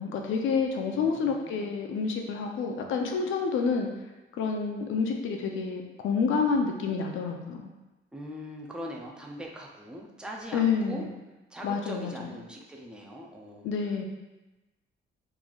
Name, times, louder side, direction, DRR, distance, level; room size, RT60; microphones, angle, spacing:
voice 1, 0.0-3.9 4.4-7.7 10.5-11.1 11.6-12.3 13.6-14.0, left 5 dB, 70° left, 2 dB, 0.5 m, -28 dB
voice 2, 0.9-1.8 8.1-11.0 11.5-13.7, equal, 5° right, -1 dB, 0.4 m, -41 dB
3.9 x 3.1 x 2.3 m, 1.1 s
cardioid pair, 150°, 21 cm